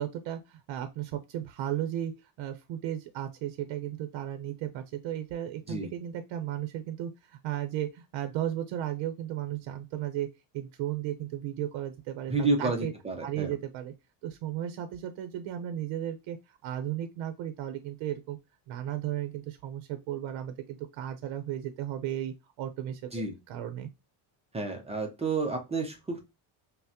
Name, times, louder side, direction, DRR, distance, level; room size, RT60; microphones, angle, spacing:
voice 1, 0.0-10.3 10.5-12.9 13.2-13.9 14.2-18.4 18.7-23.9, right 11 dB, 70° right, 0.6 m, -35 dB
voice 2, 12.3-13.5 23.1-23.3 24.5-26.2, right 3 dB, 15° right, 0.3 m, -30 dB
5.6 x 2.1 x 2.7 m
cardioid pair, 170°, 49 cm